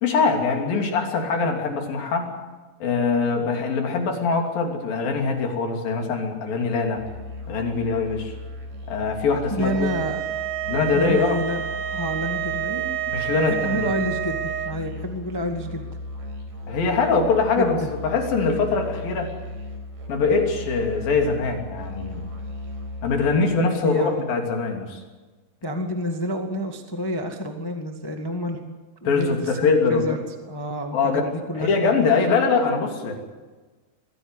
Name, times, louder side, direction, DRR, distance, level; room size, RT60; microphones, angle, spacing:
voice 1, 0.0-2.4 2.8-7.0 7.5-8.3 8.9-9.9 10.7-11.4 13.1-13.9 16.7-17.7 18.0-19.3 20.1-22.3 23.0-25.0 29.0-30.2 30.9-33.1, left 4 dB, 85° left, 3 dB, 4.8 m, -23 dB
Musical instrument, 7.0-23.4, left 2 dB, 65° right, 6.0 m, -36 dB
voice 2, 9.5-10.2 10.9-11.6 11.9-12.9 13.4-15.9 17.6-17.9 23.8-24.2 25.6-28.7 29.0-31.7 33.1-33.2, equal, 15° left, 4 dB, 0.9 m, -29 dB
sound 1, 9.6-14.8, right 11 dB, 80° right, 2.6 m, -29 dB
23.5 x 16.0 x 8.1 m, 1.3 s
omnidirectional pair, 4.0 m